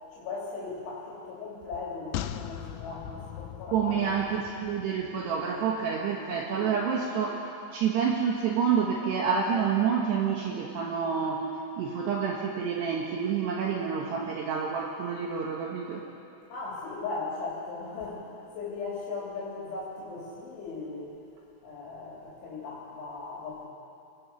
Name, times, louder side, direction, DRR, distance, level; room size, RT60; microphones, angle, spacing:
voice 1, 0.1-4.1 6.2-6.7 16.5-21.2 21.6-23.6, left 4 dB, 65° left, -5 dB, 5.5 m, -38 dB
sound 1, 2.1-5.6 5.9-6.0, left 12 dB, 85° left, 3.5 m, -39 dB
voice 2, 3.7-11.5 11.8-16.0, right 6 dB, 65° right, -1 dB, 3.0 m, -28 dB
26.0 x 19.0 x 6.3 m, 2.6 s
omnidirectional pair, 6.0 m